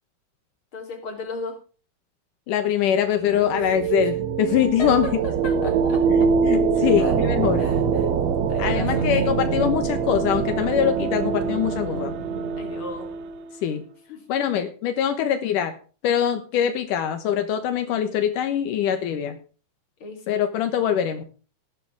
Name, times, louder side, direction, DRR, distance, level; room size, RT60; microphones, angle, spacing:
voice 1, 0.7-1.6 3.5-4.1 4.8-6.0 7.0-7.1 7.6-8.1 8.5-9.4 12.6-13.1 14.1-14.2 20.0-20.4, left 3 dB, 40° left, 2 dB, 4.1 m, -36 dB
voice 2, 2.5-5.1 6.1-7.7 8.6-12.1 13.6-13.8 14.3-15.8 16.0-19.4 20.3-21.2, left 9 dB, 85° left, 8 dB, 2.8 m, -23 dB
sound 1, 3.0-13.6, right 6 dB, 65° right, 1.9 m, -24 dB
18.0 x 9.9 x 3.5 m, 0.38 s
omnidirectional pair, 3.6 m